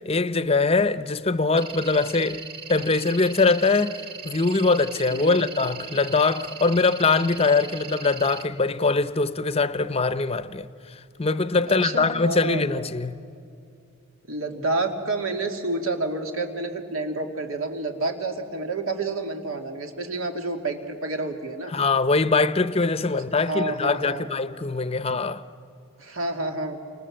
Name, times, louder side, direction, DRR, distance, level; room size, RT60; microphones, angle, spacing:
voice 1, 0.1-2.4 2.7-4.0 4.2-10.7 11.2-13.2 21.7-25.4, left 3 dB, 30° left, 0.7 m, -22 dB
sound 1, 1.6-8.4, right 5 dB, 40° right, 2.2 m, -39 dB
voice 2, 5.1-5.5 11.6-12.8 14.3-21.7 23.1-24.3 26.0-26.8, right 2 dB, 80° right, 2.7 m, -29 dB
29.0 x 26.0 x 7.6 m
head